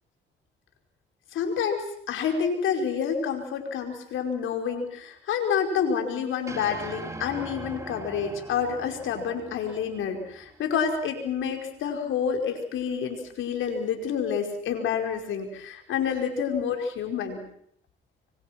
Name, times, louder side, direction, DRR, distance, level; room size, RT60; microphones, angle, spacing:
voice 1, 1.3-17.4, left 7 dB, 80° left, 4 dB, 5.2 m, -28 dB
sound 1, 6.5-10.9, right 2 dB, 15° right, 3.9 m, -41 dB
26.0 x 23.5 x 6.1 m, 0.68 s
cardioid pair, 90°, 20 cm